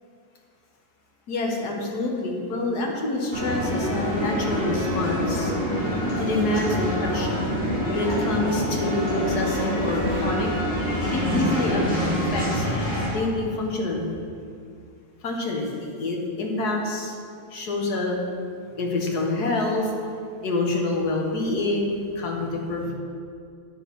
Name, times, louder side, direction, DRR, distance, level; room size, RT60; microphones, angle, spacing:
voice 1, 1.3-5.5 6.2-7.5 7.9-10.5 11.1-11.8 12.3-12.7 13.1-14.1 15.2-15.7 16.0-17.1 17.5-18.2 18.8-19.9 20.4-22.9, left 2 dB, 90° left, 0 dB, 1.8 m, -26 dB
sound 1, 3.3-13.1, equal, 30° left, 2.6 m, -26 dB
9.0 x 6.3 x 5.4 m, 2.3 s
omnidirectional pair, 1.6 m